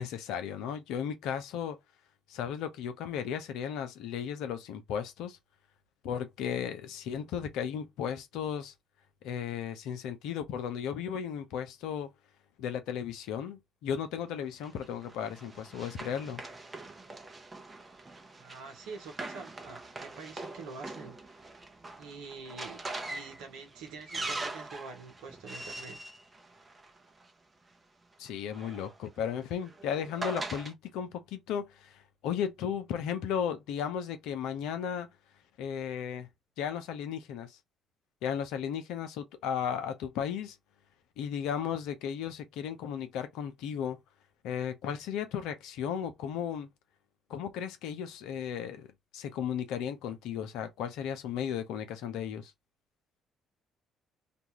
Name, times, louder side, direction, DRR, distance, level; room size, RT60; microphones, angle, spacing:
voice 1, 0.0-1.8 2.3-5.4 6.0-8.7 9.2-12.1 12.6-16.4 28.2-35.1 35.6-36.3 36.6-37.6 38.2-40.6 41.2-44.0 44.4-46.7 47.3-48.9 49.1-52.5, left 8 dB, 75° left, 0.6 m, -35 dB
Run, 14.6-27.3 28.3-30.7, right 2 dB, 30° right, 0.8 m, -43 dB
voice 2, 18.4-21.4 22.0-22.8 23.1-26.0 28.6-28.7, right 4 dB, 75° right, 1.0 m, -46 dB
2.6 x 2.3 x 2.9 m
hypercardioid pair, 50°, 0 cm